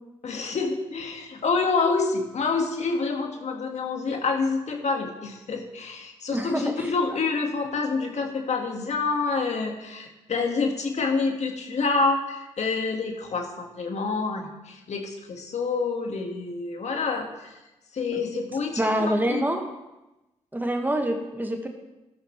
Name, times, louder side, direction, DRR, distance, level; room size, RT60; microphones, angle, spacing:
voice 1, 0.2-17.6 17.9-19.5, left 4 dB, 55° left, 2 dB, 1.9 m, -27 dB
voice 2, 6.3-6.9 18.1-18.2 18.8-19.6 20.5-21.7, right 1 dB, 15° right, 4 dB, 1.8 m, -26 dB
12.5 x 11.0 x 3.3 m, 1.0 s
hypercardioid pair, 45°, 14 cm